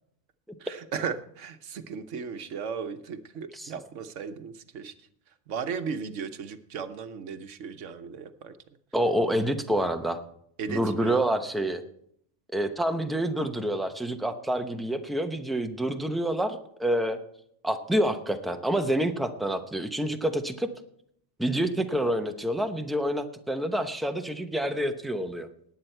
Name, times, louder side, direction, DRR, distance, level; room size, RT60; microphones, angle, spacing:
voice 1, 0.6-4.9 5.5-8.5 10.6-11.3, right 6 dB, 80° right, 9 dB, 1.2 m, -36 dB
voice 2, 8.9-10.2 10.7-11.8 12.5-17.2 17.6-20.7 21.4-25.5, right 1 dB, ahead, 6 dB, 0.7 m, -27 dB
18.5 x 8.6 x 4.5 m, 0.71 s
omnidirectional pair, 1.2 m